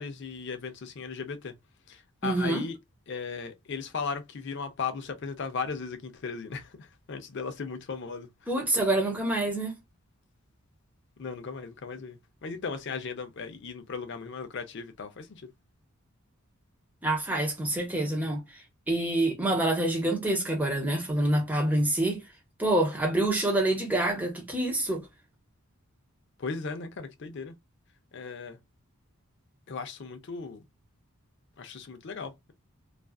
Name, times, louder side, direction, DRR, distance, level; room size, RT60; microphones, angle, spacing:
voice 1, 0.0-1.5 1.9-2.8 3.1-8.3 11.2-15.5 26.4-27.5 28.1-28.6 29.7-30.6 31.6-32.5, left 5 dB, 50° left, 0.5 m, -37 dB
voice 2, 2.2-2.6 8.5-9.7 17.0-22.2 22.6-25.0, right 1 dB, 5° right, 0.8 m, -27 dB
2.4 x 2.3 x 2.2 m
head